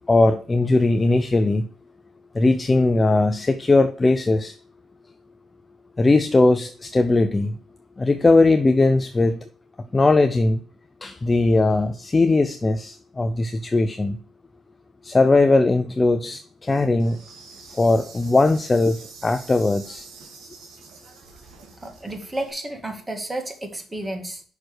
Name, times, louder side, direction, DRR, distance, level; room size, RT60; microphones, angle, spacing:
voice 1, 0.1-1.7 2.3-4.5 6.0-7.6 8.0-9.4 9.9-10.6 11.0-14.2 15.0-17.2 17.8-20.1, left 2 dB, 25° left, 0.6 m, -19 dB
Insect, 17.0-22.5, right 4 dB, 85° right, 2.3 m, -45 dB
voice 2, 21.8-24.4, right 1 dB, 20° right, 1.8 m, -31 dB
6.0 x 4.9 x 6.4 m
cardioid pair, 90°, 0 cm